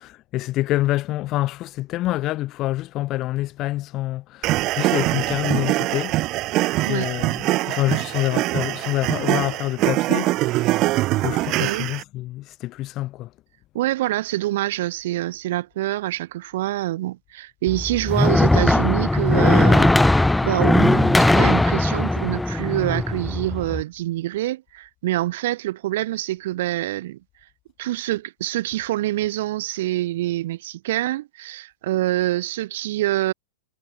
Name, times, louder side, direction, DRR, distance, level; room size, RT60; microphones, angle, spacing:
voice 1, 0.0-6.2 6.5-13.3, left 16 dB, 40° left, 7.6 m, -27 dB
sound 1, 4.4-12.0, right 18 dB, 40° right, 0.6 m, -23 dB
voice 2, 11.6-11.9 13.7-27.2 27.8-33.3, right 15 dB, 60° right, 1.6 m, -26 dB
sound 2, 17.7-23.8, left 2 dB, 5° left, 0.5 m, -19 dB
hypercardioid pair, 105°, 0 cm